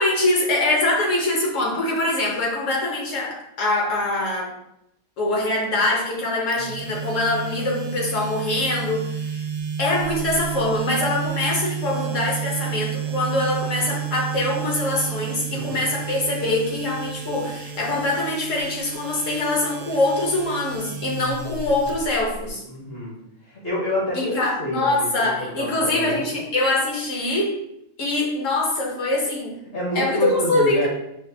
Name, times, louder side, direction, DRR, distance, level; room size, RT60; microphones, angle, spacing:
voice 1, 0.0-4.5 5.2-9.4 9.8-22.6 24.1-27.6 28.0-29.6 29.9-30.9, left 2 dB, 65° left, -1 dB, 1.3 m, -23 dB
sound 1, 6.5-22.5, right 8 dB, 85° right, 1.0 m, -31 dB
voice 2, 15.5-15.8 22.7-23.1 23.5-25.1 25.6-26.1 29.7-30.9, left 1 dB, 50° left, -4 dB, 1.0 m, -28 dB
5.6 x 2.4 x 2.7 m, 0.79 s
omnidirectional pair, 1.4 m